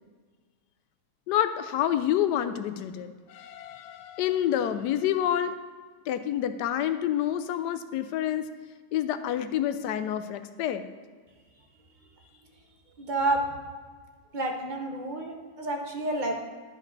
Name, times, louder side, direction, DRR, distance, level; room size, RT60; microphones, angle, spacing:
voice 1, 1.3-5.5 6.1-8.5 8.9-10.8, left 11 dB, 80° left, 11 dB, 1.2 m, -28 dB
voice 2, 13.0-13.4 14.3-16.3, right 2 dB, 35° right, 2 dB, 0.8 m, -29 dB
11.5 x 5.3 x 3.9 m, 1.5 s
omnidirectional pair, 1.8 m